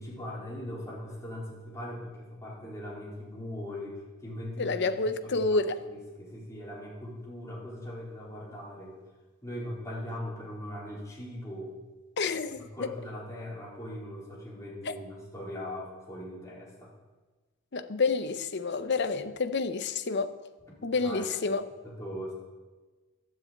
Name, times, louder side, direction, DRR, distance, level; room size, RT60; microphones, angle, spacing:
voice 1, 0.0-9.0 9.4-11.7 12.6-16.9 20.9-21.4 21.8-22.3, left 1 dB, 15° left, 4.1 m, -40 dB
voice 2, 4.6-5.8 12.2-12.9 14.9-15.0 17.7-20.3 20.8-21.6, left 4 dB, 55° left, 0.8 m, -29 dB
12.5 x 7.6 x 8.1 m
head